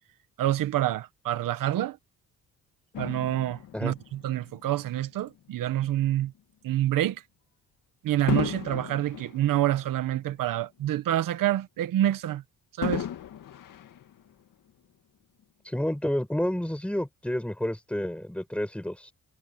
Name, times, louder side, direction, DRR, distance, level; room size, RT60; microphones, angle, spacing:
voice 1, 0.4-2.0 3.0-6.3 6.6-7.2 8.0-12.4 12.8-13.1, right 13 dB, 85° right, 1.1 m, -27 dB
Fireworks, 2.9-5.5 6.2-6.4 8.3-10.8 11.2-11.3 12.8-14.7 15.4-15.5, left 10 dB, 70° left, 2.2 m, -36 dB
voice 2, 15.6-19.1, left 1 dB, 5° left, 6.7 m, -30 dB
cardioid pair, 140°, 33 cm